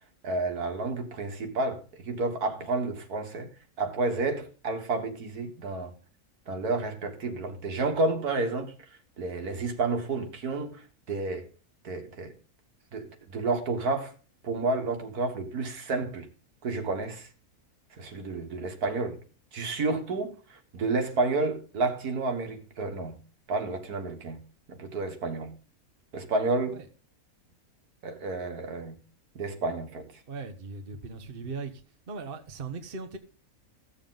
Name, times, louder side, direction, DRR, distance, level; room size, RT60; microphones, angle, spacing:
voice 1, 0.2-3.5 3.8-5.9 6.5-8.7 9.2-11.5 11.8-12.3 12.9-14.1 14.4-16.3 16.6-17.3 18.0-19.2 19.5-23.1 23.5-24.4 24.7-25.5 26.1-26.8 28.0-29.0 29.4-30.1, right 3 dB, 85° right, 2.1 m, -30 dB
voice 2, 30.3-33.2, right 4 dB, 40° right, 1.2 m, -38 dB
15.0 x 7.2 x 3.8 m
omnidirectional pair, 1.6 m